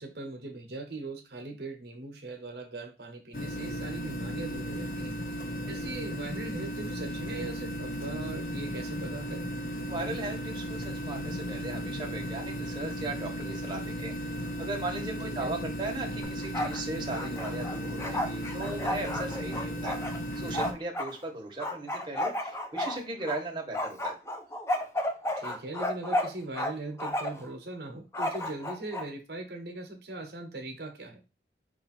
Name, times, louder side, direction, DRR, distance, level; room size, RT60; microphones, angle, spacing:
voice 1, 0.0-5.1 5.7-9.5 15.2-15.5 25.4-31.2, right 2 dB, 65° right, 4 dB, 0.8 m, -40 dB
sound 1, 3.3-20.7, equal, 50° left, 0.7 m, -35 dB
voice 2, 9.9-20.0 20.3-24.1, right 2 dB, 25° right, 1 dB, 1.0 m, -37 dB
Bark, 16.2-16.8 17.1-21.1 21.6-23.4 23.7-26.7 27.0-27.5 28.1-29.1, left 1 dB, 15° left, 0.5 m, -32 dB
4.9 x 2.4 x 4.2 m, 0.30 s
head